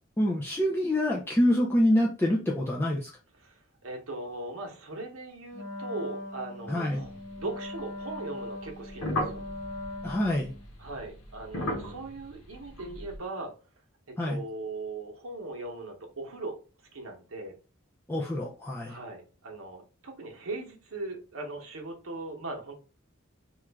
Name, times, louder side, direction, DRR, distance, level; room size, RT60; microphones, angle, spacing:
voice 1, 0.2-3.1 6.7-7.0 10.0-10.5 14.2-14.4 18.1-19.0, left 1 dB, 10° left, -3 dB, 0.3 m, -26 dB
voice 2, 3.4-7.1 7.4-9.4 10.8-13.5 14.1-16.6 16.9-17.5 18.9-22.8, right 2 dB, 90° right, 2 dB, 0.9 m, -39 dB
Wind instrument woodwind instrument, 5.5-10.7, left 2 dB, 55° left, 1.0 m, -40 dB
sound 1, 6.9-8.0 8.6-13.2, left 1 dB, 90° left, 0.9 m, -37 dB
3.1 x 2.4 x 3.4 m, 0.35 s
head